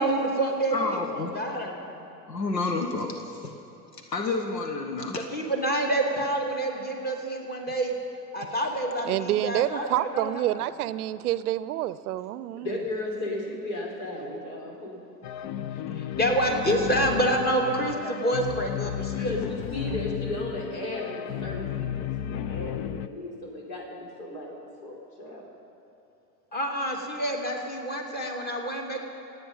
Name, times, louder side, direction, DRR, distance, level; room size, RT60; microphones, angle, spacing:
voice 1, 0.0-2.0 5.1-7.9 8.3-9.9 10.1-10.4 16.2-19.3 26.5-29.0, right 1 dB, 20° left, 1 dB, 2.7 m, -27 dB
voice 2, 0.7-1.4 2.3-3.5 4.1-5.2, left 3 dB, 85° left, 3 dB, 1.5 m, -29 dB
voice 3, 9.1-12.7, right 14 dB, 65° right, 16 dB, 0.6 m, -28 dB
voice 4, 12.5-15.0 19.2-21.9 22.2-25.5, left 1 dB, 60° left, -1 dB, 4.8 m, -35 dB
sound 1, 15.2-23.1, left 10 dB, 40° left, 0.6 m, -33 dB
27.0 x 9.3 x 5.6 m, 2.9 s
hypercardioid pair, 90°, 49 cm